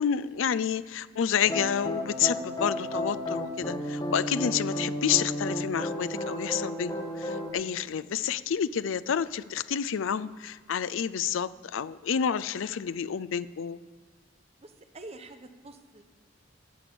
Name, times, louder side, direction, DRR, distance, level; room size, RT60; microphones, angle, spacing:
voice 1, 0.0-13.8, left 8 dB, 75° left, 15 dB, 0.4 m, -29 dB
sound 1, 1.5-7.5, equal, 20° left, 1.4 m, -32 dB
voice 2, 14.6-16.0, right 2 dB, 30° right, 7 dB, 0.8 m, -46 dB
11.0 x 8.4 x 6.9 m, 1.4 s
head